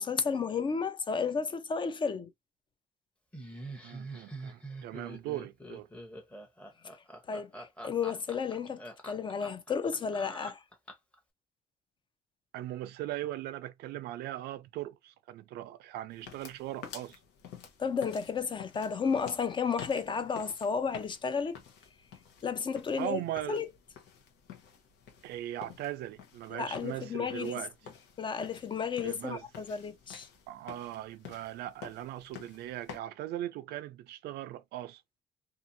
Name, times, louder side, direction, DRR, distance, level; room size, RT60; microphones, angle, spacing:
voice 1, 0.0-2.3 7.3-10.6 17.8-21.6 22.4-23.2 23.5-23.7 26.5-27.6 28.2-30.3, left 6 dB, 30° left, 0.4 m, -32 dB
Laughter, 3.3-11.2, right 1 dB, 5° left, 0.8 m, -45 dB
voice 2, 3.8-5.9 12.5-17.2 23.0-23.6 25.2-27.7 29.0-29.4 30.5-35.0, right 13 dB, 75° right, 0.4 m, -39 dB
sound 1, 16.1-33.0, left 7 dB, 85° left, 0.9 m, -50 dB
2.7 x 2.4 x 2.6 m
cardioid pair, 110°, 17 cm